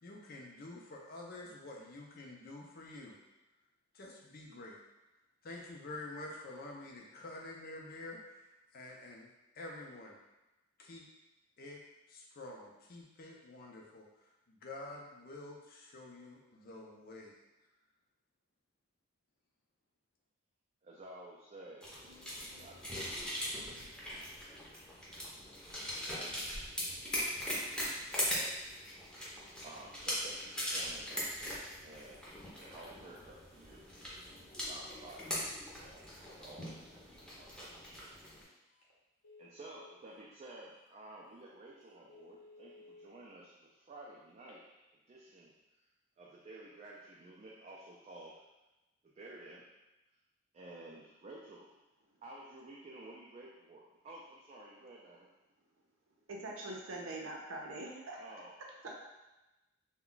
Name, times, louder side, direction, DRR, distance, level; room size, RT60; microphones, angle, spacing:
voice 1, 0.0-3.2 3.9-4.8 5.4-9.3 9.5-10.2 10.8-11.1 11.6-11.8 12.1-17.4, left 2 dB, 45° left, -1 dB, 0.5 m, -48 dB
voice 2, 20.8-21.9 22.6-23.6 25.3-26.3 26.9-27.7 28.0-28.6 29.1-29.2 29.6-31.3 31.8-33.8 34.6-35.3 35.7-37.9 39.4-44.6 45.1-45.5 46.2-48.4 49.0-49.6 50.5-51.7 52.2-55.3 58.2-58.5, right 2 dB, 35° right, -4 dB, 0.3 m, -53 dB
sound 1, 21.8-38.4, equal, 5° left, 0.6 m, -40 dB
Telephone, 38.7-38.9 39.2-40.3 40.9-41.0 41.4-41.5 41.9-43.1 44.3-44.9, left 3 dB, 80° left, 0.7 m, -58 dB
voice 3, 56.3-58.2 58.8-58.9, right 2 dB, 80° right, -1 dB, 0.6 m, -43 dB
2.3 x 2.2 x 3.8 m, 1.0 s
head